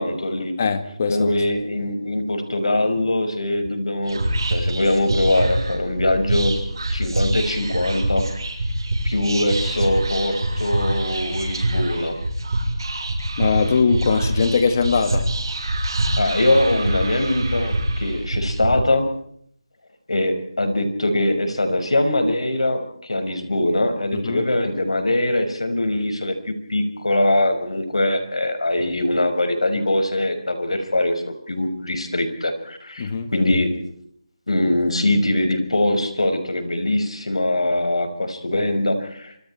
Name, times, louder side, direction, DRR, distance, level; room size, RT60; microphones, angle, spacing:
voice 1, 0.0-0.6 1.1-6.6 6.9-8.2 9.0-12.2 16.2-19.0 20.1-33.7 34.5-39.4, left 1 dB, 75° left, 5.6 m, -22 dB
voice 2, 0.6-1.6 13.4-15.3 24.1-24.4 33.0-33.3, left 5 dB, 30° left, 2.0 m, -21 dB
Whispering, 4.0-18.7, right 1 dB, 45° right, 7.3 m, -25 dB
27.5 x 26.0 x 4.5 m
figure-of-eight pair, 170°, 3 cm